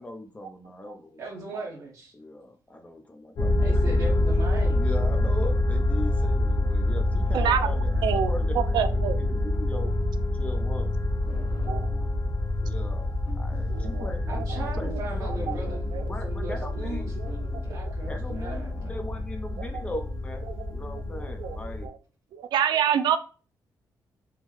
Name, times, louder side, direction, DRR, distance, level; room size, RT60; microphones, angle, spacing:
voice 1, 0.0-1.2 2.1-4.1 4.8-9.9 10.3-11.0 12.6-14.4 14.8-15.7 16.1-17.1 18.0-21.9, left 1 dB, 15° left, 0.5 m, -39 dB
voice 2, 1.2-2.1 3.6-4.9 14.3-15.8 16.2-18.9, right 2 dB, 50° right, 0.8 m, -38 dB
sound 1, 3.4-21.9, left 2 dB, 60° left, 0.7 m, -27 dB
voice 3, 7.3-8.3 8.7-9.2 11.7-11.9 13.7-14.1 14.9-15.0 15.5-16.0 17.2-17.3 18.5-18.6 20.9-21.0 21.4-21.6 21.8-22.0 22.3-23.2, right 9 dB, 85° right, 0.4 m, -27 dB
sound 2, 11.3-12.5 12.8-19.3, left 3 dB, 80° left, 1.1 m, -45 dB
3.6 x 2.1 x 3.0 m
cardioid pair, 120°, 7 cm